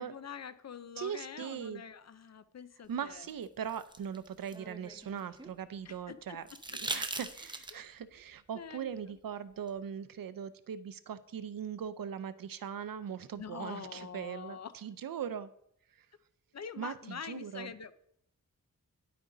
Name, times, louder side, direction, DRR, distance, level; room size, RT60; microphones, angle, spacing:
voice 1, 0.0-3.3 5.8-6.4 6.9-7.0 7.7-7.8 8.5-8.9 13.4-14.7 16.5-17.9, left 7 dB, 50° left, 13 dB, 0.6 m, -45 dB
voice 2, 1.0-1.8 2.9-6.4 6.7-15.5 15.9-16.1 16.8-17.7, right 8 dB, 85° right, 14 dB, 0.6 m, -40 dB
sound 1, 3.3-5.6 6.5-8.0 9.7-9.8, right 2 dB, 15° right, 0.7 m, -41 dB
10.0 x 8.7 x 3.9 m, 0.71 s
wide cardioid pair, 130°, 33 cm